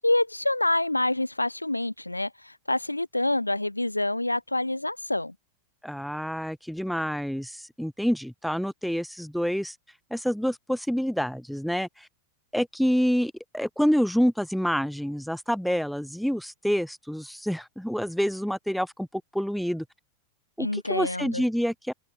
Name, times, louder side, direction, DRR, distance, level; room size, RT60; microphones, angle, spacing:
voice 1, 0.0-5.3 20.6-21.4, left 2 dB, 85° left, 5.3 m, -27 dB
voice 2, 5.8-9.7 10.1-12.1 12.5-19.9 20.6-21.9, equal, ahead, 7.2 m, -27 dB
figure-of-eight pair, 90°, 0 cm